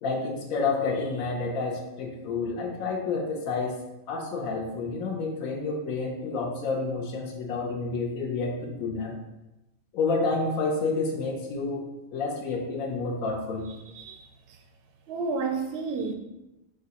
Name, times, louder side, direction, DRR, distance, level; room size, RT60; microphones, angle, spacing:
voice 1, 0.0-3.8 4.1-9.2 9.9-11.8 12.1-13.7, left 3 dB, 80° left, 0 dB, 1.2 m, -29 dB
voice 2, 14.0-14.3 15.1-16.1, right 4 dB, 65° right, 4 dB, 0.6 m, -30 dB
6.2 x 2.5 x 2.8 m, 0.96 s
omnidirectional pair, 1.4 m